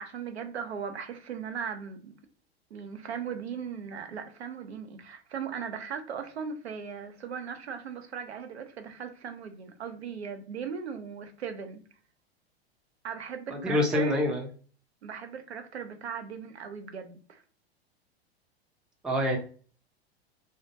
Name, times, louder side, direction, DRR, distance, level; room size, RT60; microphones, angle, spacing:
voice 1, 0.0-2.1 2.7-11.8 13.0-14.2 15.0-17.4, right 7 dB, 80° right, 0.6 m, -38 dB
voice 2, 13.5-14.5 19.0-19.4, left 1 dB, 5° right, 0.4 m, -26 dB
2.2 x 2.1 x 2.6 m
figure-of-eight pair, 95°, 32 cm